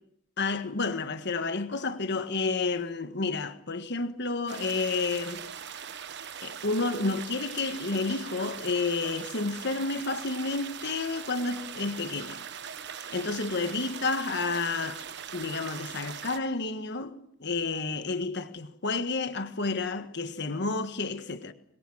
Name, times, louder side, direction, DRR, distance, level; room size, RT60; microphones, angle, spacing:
voice 1, 0.4-5.4 6.4-12.4 13.1-15.0 15.3-21.5, left 3 dB, 60° left, 1.6 m, -30 dB
sound 1, 4.5-16.4, right 8 dB, 60° right, 1.2 m, -41 dB
26.0 x 22.5 x 7.4 m
head